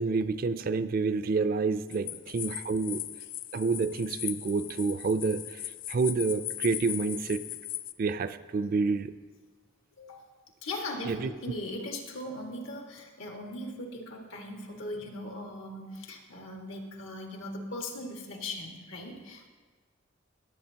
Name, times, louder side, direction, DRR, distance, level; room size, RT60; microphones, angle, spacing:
voice 1, 0.0-3.0 3.5-5.6 5.9-7.5 8.0-9.1 11.0-11.3, right 4 dB, 45° right, 13 dB, 0.4 m, -28 dB
sound 1, 1.9-7.9, left 14 dB, 45° left, 0.3 m, -38 dB
voice 2, 10.6-19.5, left 1 dB, 90° left, 1 dB, 1.8 m, -39 dB
20.5 x 7.9 x 2.9 m, 1.4 s
head